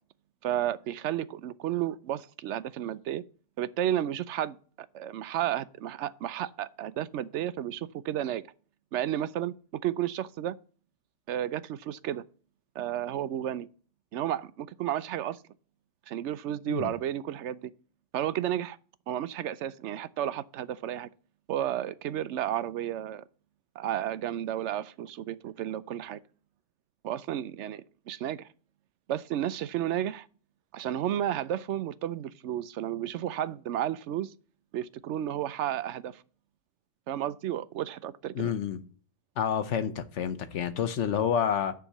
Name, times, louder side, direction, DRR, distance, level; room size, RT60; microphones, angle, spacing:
voice 1, 0.4-3.2 3.6-4.6 4.9-8.4 8.9-9.5 9.8-10.5 11.3-12.2 12.8-13.7 14.1-15.4 16.1-17.7 18.1-18.8 19.1-21.1 21.5-23.2 23.8-26.2 27.0-28.5 29.1-30.3 30.7-34.3 34.7-36.2 37.1-38.5, right 11 dB, 75° right, 0.9 m, -32 dB
voice 2, 38.3-38.8 39.4-41.7, left 8 dB, 80° left, 1.1 m, -29 dB
9.8 x 3.7 x 7.2 m
omnidirectional pair, 1.2 m